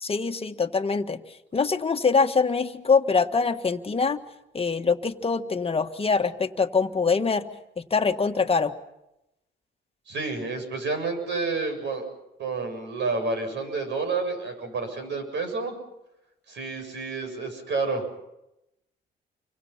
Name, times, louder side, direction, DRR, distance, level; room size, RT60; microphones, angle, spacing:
voice 1, 0.0-1.2 1.5-4.2 4.5-7.4 7.9-8.7, left 4 dB, 30° left, 6 dB, 1.7 m, -24 dB
voice 2, 10.1-12.1 12.4-15.7 16.5-18.0, right 3 dB, 65° right, 6 dB, 7.6 m, -29 dB
29.5 x 24.5 x 5.9 m, 0.89 s
cardioid pair, 90°, 20 cm